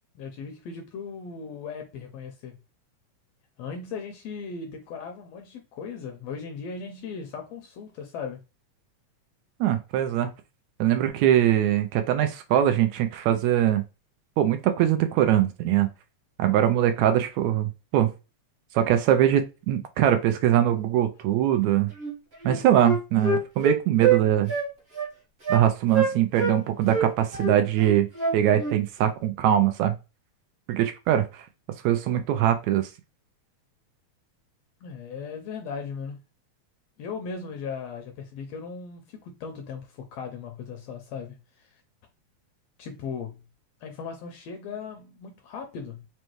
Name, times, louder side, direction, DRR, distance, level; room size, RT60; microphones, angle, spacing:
voice 1, 0.1-2.6 3.6-8.4 34.8-36.2 37.0-41.8 42.8-43.4 43.8-46.1, left 5 dB, 75° left, 1.6 m, -37 dB
voice 2, 9.6-10.3 10.8-13.8 14.4-15.9 16.4-18.1 18.8-21.9 22.4-24.5 25.5-28.1 28.3-30.0 30.7-31.4 31.8-32.9, right 11 dB, 80° right, 1.8 m, -22 dB
Wind instrument woodwind instrument, 22.0-22.1 22.4-24.2 24.5-24.7 25.0-25.1 25.5-25.6 25.9-26.6 26.9-28.8, right 5 dB, 55° right, 0.6 m, -25 dB
5.3 x 2.2 x 3.0 m
omnidirectional pair, 3.4 m